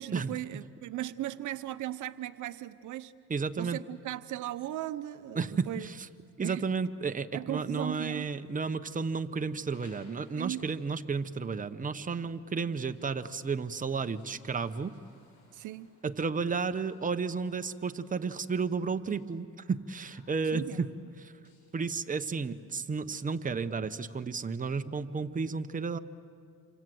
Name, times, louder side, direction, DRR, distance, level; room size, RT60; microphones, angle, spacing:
voice 1, 0.0-3.1 3.6-5.9 6.4-6.6 7.3-8.3 10.4-10.6 15.5-15.9 20.5-20.8, right 14 dB, 75° right, 12 dB, 0.8 m, -37 dB
voice 2, 3.3-3.8 5.3-6.1 6.4-14.9 16.0-20.9 21.2-21.3 21.7-26.0, right 5 dB, 25° right, 8 dB, 1.0 m, -32 dB
sound 1, 9.7-24.1, left 3 dB, 85° left, 7.8 m, -64 dB
28.0 x 25.0 x 7.8 m, 2.3 s
cardioid pair, 90°, 30 cm